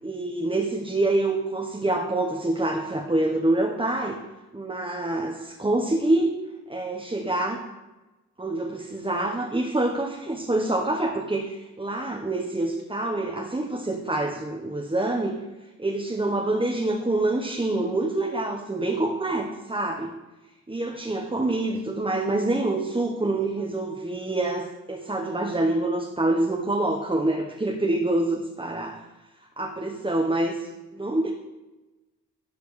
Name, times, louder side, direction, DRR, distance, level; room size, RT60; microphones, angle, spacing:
voice 1, 0.0-4.2 4.5-6.3 6.7-7.6 8.4-15.4 15.8-20.1 20.7-29.0 29.6-31.3, right 2 dB, 15° right, 1 dB, 1.0 m, -26 dB
12.0 x 5.0 x 3.2 m, 1.1 s
supercardioid pair, 45°, 37 cm